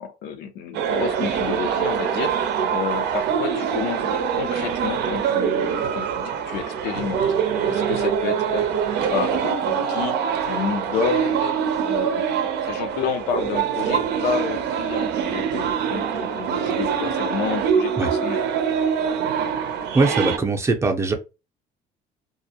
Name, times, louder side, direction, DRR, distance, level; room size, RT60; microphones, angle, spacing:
voice 1, 0.0-7.2 7.7-8.7 9.1-18.4, left 6 dB, 85° left, 0.5 m, -30 dB
sound 1, 0.7-20.4, right 7 dB, 85° right, 0.6 m, -24 dB
voice 2, 19.9-21.1, right 3 dB, 15° right, 0.5 m, -21 dB
2.3 x 2.1 x 2.7 m
cardioid pair, 110°, 17 cm